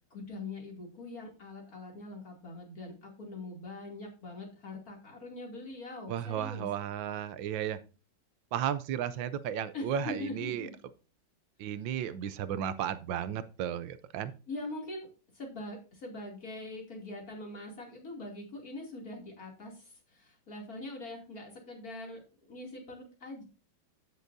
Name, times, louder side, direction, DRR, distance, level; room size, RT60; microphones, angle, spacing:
voice 1, 0.1-6.7 9.7-10.7 14.5-22.2 22.5-23.4, left 2 dB, 50° left, 0 dB, 3.1 m, -43 dB
voice 2, 6.1-7.8 8.5-10.7 11.6-14.3, right 9 dB, 85° right, 14 dB, 1.4 m, -34 dB
15.5 x 6.3 x 2.6 m, 0.33 s
omnidirectional pair, 2.0 m